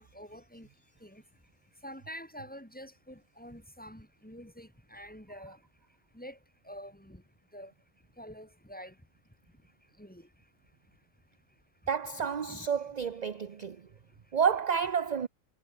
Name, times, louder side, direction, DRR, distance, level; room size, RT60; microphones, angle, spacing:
voice 1, 0.0-11.9 12.2-12.7 13.3-14.4, equal, 5° left, 3.6 m, -50 dB
voice 2, 11.9-13.9 14.3-15.3, right 7 dB, 40° right, 0.7 m, -30 dB
omnidirectional pair, 1.4 m